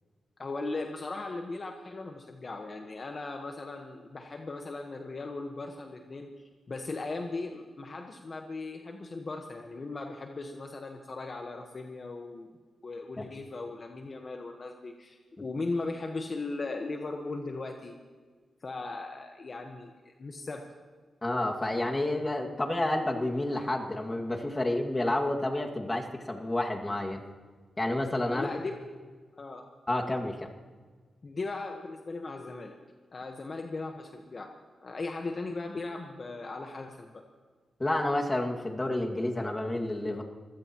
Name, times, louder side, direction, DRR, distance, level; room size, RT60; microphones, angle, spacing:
voice 1, 0.4-12.5 12.8-18.0 18.6-20.7 28.3-28.8 29.4-29.7 31.2-32.8 33.1-37.2, left 3 dB, 45° left, 3 dB, 1.3 m, -38 dB
voice 2, 21.2-27.2 27.8-28.5 29.9-30.5 37.8-40.2, left 1 dB, 25° left, 1 dB, 2.2 m, -30 dB
24.5 x 16.5 x 3.1 m, 1.5 s
cardioid pair, 75°, 0 cm